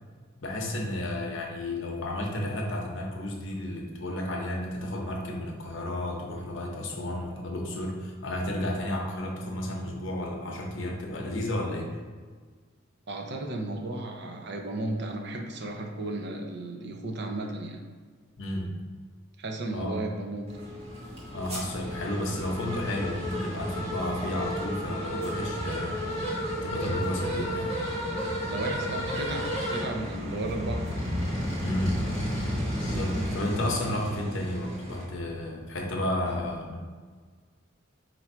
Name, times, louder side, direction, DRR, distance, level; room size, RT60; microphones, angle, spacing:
voice 1, 0.4-11.9 18.4-18.7 19.7-20.0 21.3-27.8 31.6-32.0 32.8-36.9, left 1 dB, 60° left, 0 dB, 0.8 m, -32 dB
voice 2, 13.1-17.8 19.4-20.6 28.5-30.9 36.3-36.4, right 2 dB, 55° right, 3 dB, 0.6 m, -34 dB
sound 1, 20.5-35.0, equal, 30° right, 1.2 m, -32 dB
4.5 x 2.6 x 4.3 m, 1.5 s
head